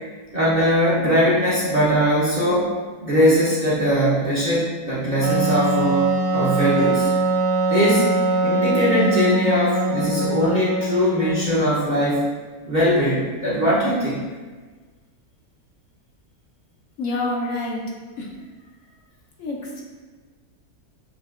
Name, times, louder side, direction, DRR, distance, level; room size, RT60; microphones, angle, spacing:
voice 1, 0.3-2.7 3.0-7.1 7.7-8.1 8.4-12.3 12.6-14.2, equal, 40° right, -9 dB, 0.7 m, -20 dB
Wind instrument woodwind instrument, 5.2-11.7, right 2 dB, 70° right, 1.2 m, -22 dB
voice 2, 17.0-17.8 18.2-18.3 19.4-19.8, left 2 dB, 65° left, -2 dB, 1.0 m, -27 dB
7.2 x 2.7 x 2.4 m, 1.4 s
omnidirectional pair, 1.6 m